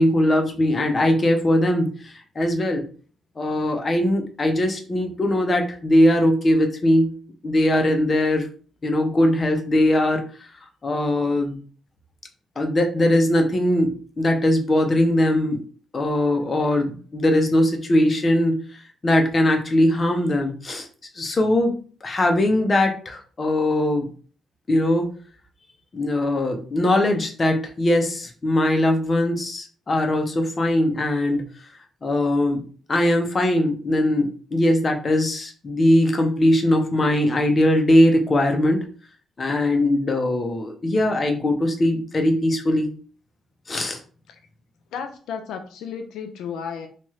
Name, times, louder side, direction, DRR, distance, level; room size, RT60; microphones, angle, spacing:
voice 1, 0.0-2.8 3.4-7.1 7.4-8.5 8.8-10.2 10.8-11.6 12.6-15.6 15.9-20.9 21.2-21.7 22.0-24.1 24.7-25.1 25.9-31.5 32.0-32.6 32.9-38.8 39.4-42.9 43.7-44.0, left 1 dB, 30° left, 0.6 m, -20 dB
voice 2, 44.9-46.9, left 7 dB, 85° left, 0.4 m, -33 dB
3.0 x 2.3 x 2.9 m
cardioid pair, 120°, 0 cm